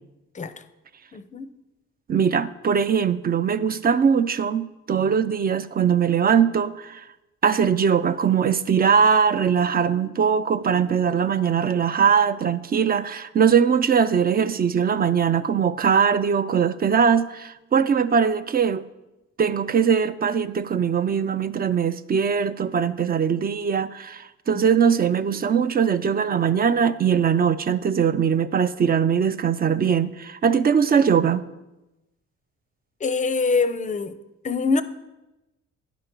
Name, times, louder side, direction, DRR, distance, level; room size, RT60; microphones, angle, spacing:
voice 1, 1.1-1.5 24.5-24.6 33.0-34.1 34.4-34.8, left 4 dB, 25° left, 0.5 m, -24 dB
voice 2, 2.1-7.0 7.4-18.8 19.4-31.4, right 7 dB, 30° right, 0.4 m, -21 dB
10.5 x 5.2 x 4.5 m
cardioid pair, 90°, 30 cm